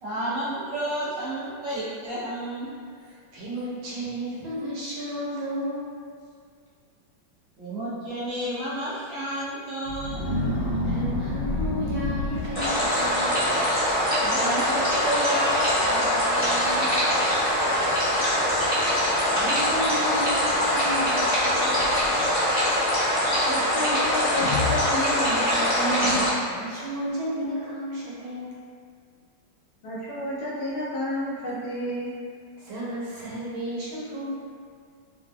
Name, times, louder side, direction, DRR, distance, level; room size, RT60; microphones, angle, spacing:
voice 1, 0.0-2.7 7.6-10.2 14.2-16.9, right 1 dB, 60° right, -10 dB, 0.8 m, -31 dB
voice 2, 3.3-5.9 10.8-13.4 17.9-18.4 19.3-21.8 26.5-28.5 32.6-34.2, equal, 90° right, -7 dB, 1.6 m, -33 dB
sound 1, 9.8-13.1 13.8-14.0 14.3-14.8 15.0-15.1 15.9-16.0 16.5-16.6 17.1-17.6 18.4-18.5 21.3-22.3 24.4-25.4 25.9-26.7, left 2 dB, 45° left, 0.8 m, -30 dB
sound 2, 12.5-26.3, equal, 5° right, 0.7 m, -23 dB
voice 3, 23.5-26.2 29.8-32.1, equal, 70° left, -7 dB, 1.0 m, -30 dB
3.2 x 2.8 x 2.2 m, 2.1 s
omnidirectional pair, 2.1 m